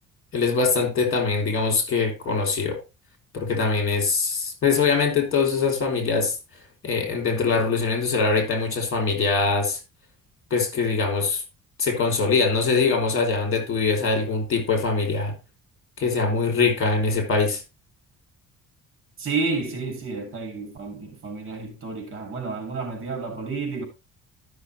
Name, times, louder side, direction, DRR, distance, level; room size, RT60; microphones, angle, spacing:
voice 1, 0.3-2.8 3.3-6.4 6.8-9.8 10.5-11.4 11.8-15.3 16.0-17.6, left 4 dB, 45° left, 3.6 m, -23 dB
voice 2, 19.2-23.8, right 4 dB, 40° right, 3.2 m, -30 dB
12.5 x 6.3 x 3.3 m
cardioid pair, 125°, 31 cm